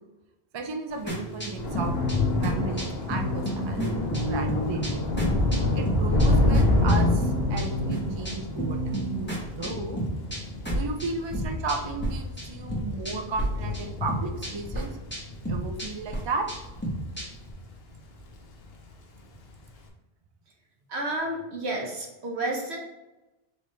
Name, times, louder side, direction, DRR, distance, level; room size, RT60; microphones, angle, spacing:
voice 1, 0.5-1.9 2.3-5.2 5.7-8.8 9.6-10.0 10.7-14.9 15.5-16.5, right 3 dB, 45° right, 4 dB, 0.3 m, -34 dB
Thunder / Rain, 1.0-17.6 17.9-18.4 18.6-18.8, left 2 dB, 70° left, 1.0 m, -28 dB
sound 1, 1.1-12.1 12.4-13.4 13.7-17.5, equal, 10° left, 0.9 m, -31 dB
voice 2, 20.9-22.8, right 1 dB, 80° right, -1 dB, 1.3 m, -31 dB
4.1 x 3.3 x 3.2 m, 1.0 s
omnidirectional pair, 1.1 m